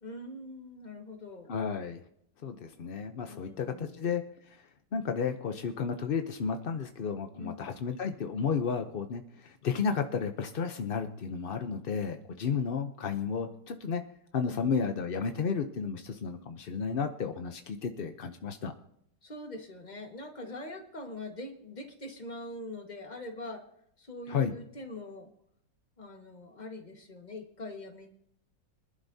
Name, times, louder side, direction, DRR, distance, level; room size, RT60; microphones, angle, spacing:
voice 1, 0.0-1.5 3.3-4.0 7.3-7.7 14.5-14.7 19.2-23.7 24.0-25.3 26.0-28.1, left 2 dB, 25° left, 3 dB, 1.6 m, -43 dB
voice 2, 1.5-2.0 2.4-4.6 4.9-14.0 14.3-18.7 24.3-24.5, left 6 dB, 55° left, 7 dB, 0.6 m, -32 dB
24.5 x 11.5 x 2.7 m, 0.72 s
omnidirectional pair, 1.9 m